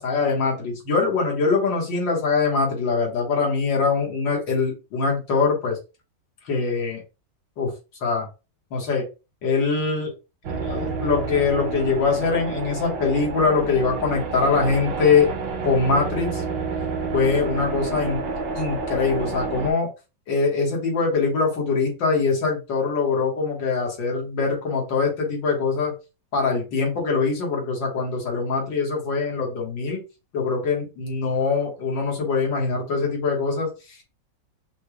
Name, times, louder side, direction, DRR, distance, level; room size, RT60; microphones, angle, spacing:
voice 1, 0.0-5.8 6.4-7.0 7.6-7.7 8.0-8.3 8.7-9.1 9.4-10.1 10.6-15.3 15.6-16.4 17.1-18.2 18.5-19.9 20.3-25.9 26.3-30.0 30.3-34.0, left 4 dB, 85° left, -1 dB, 2.2 m, -23 dB
sound 1, 10.4-19.7, right 4 dB, 85° right, 1.7 m, -29 dB
5.5 x 2.3 x 3.1 m, 0.29 s
omnidirectional pair, 2.0 m